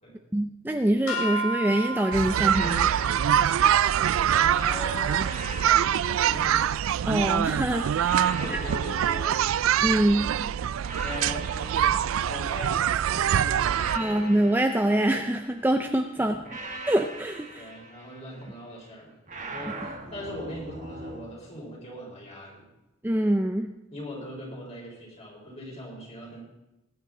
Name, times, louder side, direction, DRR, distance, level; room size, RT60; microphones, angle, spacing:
voice 1, 0.3-2.9 7.1-8.2 8.5-8.6 9.8-10.3 13.9-16.4 16.9-17.7 23.0-23.7, right 1 dB, 10° right, 5 dB, 0.5 m, -25 dB
sound 1, 1.1-7.4, right 2 dB, 80° left, 3.7 m, -36 dB
sound 2, 2.1-14.0, right 9 dB, 70° right, 0.3 m, -24 dB
sound 3, 2.4-4.5 5.2-7.3 8.0-10.2 10.8-13.0 13.6-15.8 16.4-18.6 19.3-21.3, right 2 dB, 35° right, 1.4 m, -42 dB
voice 2, 4.3-5.3 6.0-6.6 8.0-9.4 11.0-14.3 16.1-16.4 17.5-22.7 23.9-26.4, left 1 dB, 30° left, -3 dB, 4.5 m, -40 dB
20.5 x 9.7 x 3.8 m, 0.96 s
head